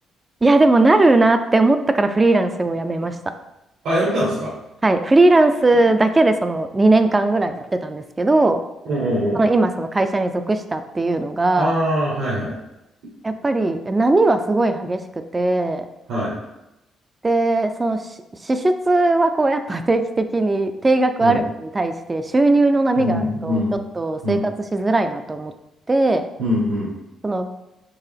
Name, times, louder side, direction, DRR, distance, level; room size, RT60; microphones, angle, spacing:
voice 1, 0.4-3.2 4.8-8.6 9.4-11.7 13.2-15.0 15.3-15.9 17.2-18.1 18.4-23.6 24.0-25.5 25.9-26.2 27.2-27.5, right 2 dB, 20° right, 8 dB, 0.3 m, -18 dB
voice 2, 3.8-4.5 8.8-9.4 11.6-12.6 16.1-16.3 21.2-21.4 23.0-23.8 24.2-24.4 26.4-26.9, equal, 80° right, -7 dB, 1.3 m, -22 dB
4.6 x 2.9 x 3.3 m, 0.92 s
cardioid pair, 90°, 0 cm